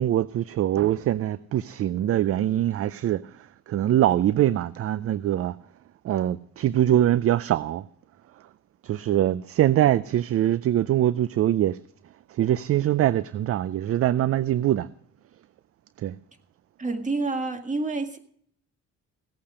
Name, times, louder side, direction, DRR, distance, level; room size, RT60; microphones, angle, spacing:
voice 1, 0.0-5.6 6.0-7.8 8.8-11.8 12.3-14.9 16.0-16.2, right 12 dB, 50° right, 0.4 m, -23 dB
voice 2, 16.8-18.2, right 3 dB, 25° right, 1.7 m, -28 dB
17.0 x 8.6 x 5.0 m
cardioid pair, 90°, 30 cm